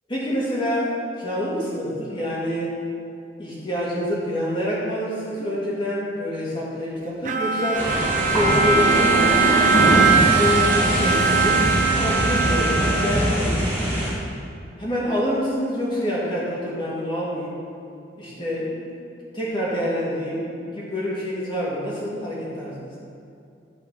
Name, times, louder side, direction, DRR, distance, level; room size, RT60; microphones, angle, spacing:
voice 1, 0.1-2.7 3.4-7.9 8.3-9.4 10.1-11.7 12.0-13.6 14.8-17.6 18.2-22.9, equal, 25° left, -6 dB, 2.5 m, -27 dB
Bowed string instrument, 7.3-13.7, right 5 dB, 45° right, 0.4 m, -21 dB
sound 1, 7.7-14.1, equal, 10° left, 2.6 m, -22 dB
12.5 x 5.0 x 5.9 m, 2.6 s
head